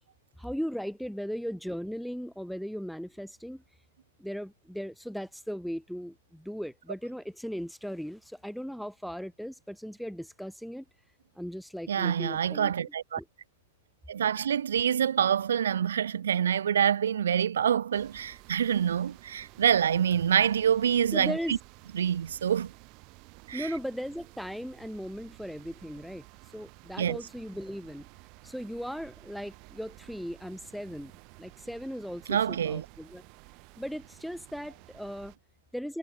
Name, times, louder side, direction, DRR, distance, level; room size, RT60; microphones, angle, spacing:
voice 1, 0.4-3.6 4.2-10.9 11.4-12.7 13.2-13.3 21.1-21.6 23.5-26.3 26.5-28.1 28.4-31.1 31.4-33.2 33.8-35.3 35.7-36.0, equal, ahead, 2.1 m, -37 dB
voice 2, 11.9-13.2 14.1-21.6 21.9-22.7 23.5-23.7 27.0-27.2 32.3-32.9, right 8 dB, 75° right, 0.6 m, -26 dB
sound 1, 17.9-35.4, right 29 dB, 45° right, 1.5 m, -53 dB
hypercardioid pair, 110°, 0 cm